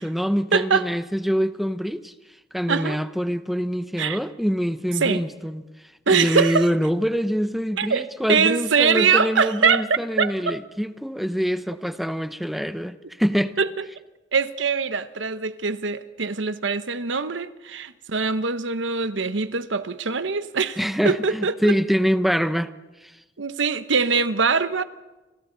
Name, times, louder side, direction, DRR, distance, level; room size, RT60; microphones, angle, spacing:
voice 1, 0.0-2.1 2.5-5.6 6.1-13.5 20.8-22.7 23.0-23.1, equal, ahead, 0.8 m, -25 dB
voice 2, 0.5-0.8 2.7-3.0 4.0-4.2 5.0-5.2 6.1-6.7 7.8-9.8 10.2-10.6 13.6-13.7 14.3-20.8 21.0-21.8 23.4-24.8, right 5 dB, 90° right, 1.1 m, -22 dB
29.5 x 26.5 x 4.0 m
head